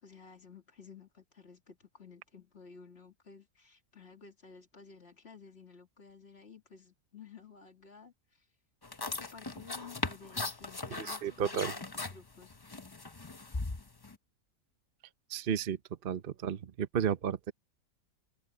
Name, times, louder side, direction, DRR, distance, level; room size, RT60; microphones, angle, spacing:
voice 1, 0.0-8.4 9.2-12.5, left 5 dB, 45° left, 2.8 m, -54 dB
sound 1, 8.8-14.2, left 3 dB, 20° left, 0.7 m, -39 dB
voice 2, 11.0-11.7 15.3-15.8 16.0-17.5, right 8 dB, 45° right, 0.8 m, -33 dB
omnidirectional pair, 1.5 m